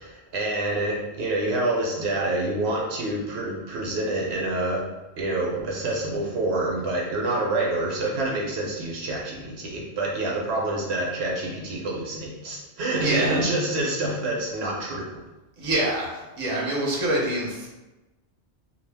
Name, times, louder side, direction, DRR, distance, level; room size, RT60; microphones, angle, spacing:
voice 1, 0.0-4.9 5.2-15.1, right 2 dB, 70° right, -2 dB, 0.8 m, -27 dB
voice 2, 13.0-13.4 15.6-17.7, right 1 dB, 35° right, -3 dB, 0.6 m, -26 dB
2.3 x 2.1 x 3.3 m, 1.1 s
omnidirectional pair, 1.2 m